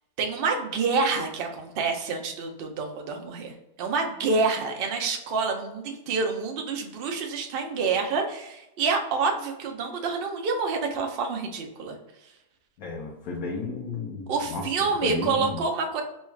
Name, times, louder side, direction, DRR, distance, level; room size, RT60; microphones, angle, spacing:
voice 1, 0.2-12.0 14.3-16.0, right 4 dB, 70° right, 3 dB, 0.5 m, -27 dB
voice 2, 12.8-14.6 15.0-15.6, left 4 dB, 65° left, -2 dB, 1.1 m, -32 dB
4.3 x 2.3 x 3.1 m, 0.88 s
omnidirectional pair, 1.8 m